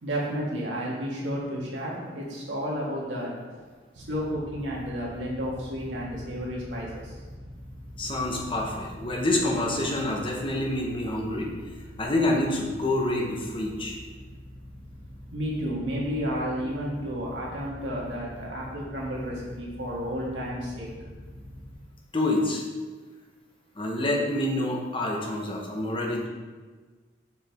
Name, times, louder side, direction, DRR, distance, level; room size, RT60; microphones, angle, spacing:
voice 1, 0.0-7.2 15.3-21.1, equal, 80° right, -4 dB, 1.7 m, -32 dB
sound 1, 4.0-21.7, equal, 60° right, 1.1 m, -44 dB
voice 2, 8.0-11.5 12.0-14.0 22.1-22.6 23.8-26.3, left 1 dB, 30° left, 0 dB, 0.9 m, -27 dB
6.7 x 4.8 x 3.5 m, 1.4 s
head